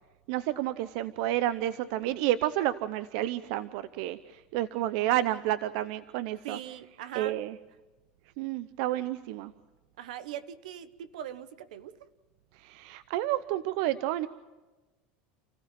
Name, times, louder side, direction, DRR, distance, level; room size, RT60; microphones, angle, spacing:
voice 1, 0.3-6.6 7.1-7.6 8.4-9.5 12.5-14.3, right 14 dB, 70° right, 14 dB, 0.7 m, -30 dB
voice 2, 6.4-7.4 10.0-12.0, right 10 dB, 90° right, 13 dB, 1.2 m, -41 dB
29.5 x 15.0 x 7.6 m, 1.2 s
supercardioid pair, 125°, 4 cm